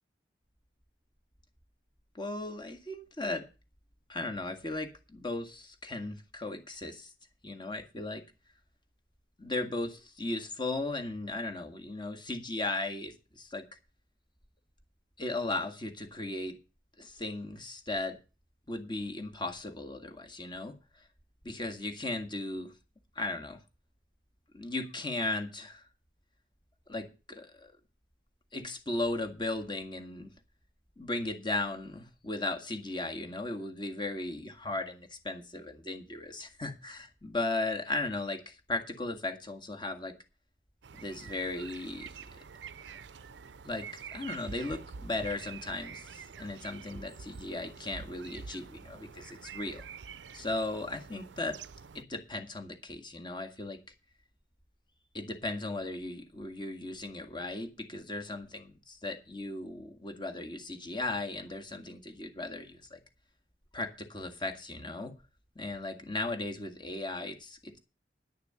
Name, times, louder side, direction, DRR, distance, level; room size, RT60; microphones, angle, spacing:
voice 1, 2.1-3.5 4.1-7.1 7.4-8.3 9.4-13.6 15.2-16.6 17.0-18.2 18.7-21.1 21.4-22.7 23.2-23.6 24.5-25.9 26.9-27.7 28.5-30.3 31.0-40.2 40.9-42.1 42.8-42.9 43.7-49.9 50.3-51.6 51.9-53.8 55.1-63.0 63.7-65.2 65.6-67.8, left 2 dB, 25° left, 1.8 m, -36 dB
sound 1, 40.8-52.0, right 6 dB, 85° right, 0.6 m, -47 dB
11.0 x 6.7 x 7.9 m
head